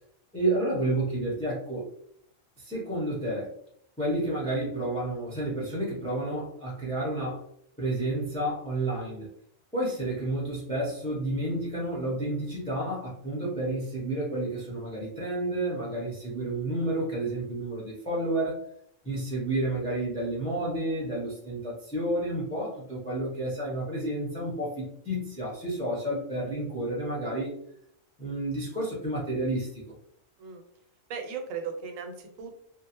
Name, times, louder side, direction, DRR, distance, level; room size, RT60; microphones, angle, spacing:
voice 1, 0.3-1.9 2.6-3.5 4.0-7.4 7.8-9.3 9.7-18.6 19.0-27.5 28.2-29.8, right 1 dB, 5° left, -5 dB, 0.5 m, -30 dB
voice 2, 31.1-32.6, right 6 dB, 90° right, 4 dB, 1.0 m, -37 dB
2.6 x 2.0 x 2.8 m, 0.69 s
omnidirectional pair, 1.3 m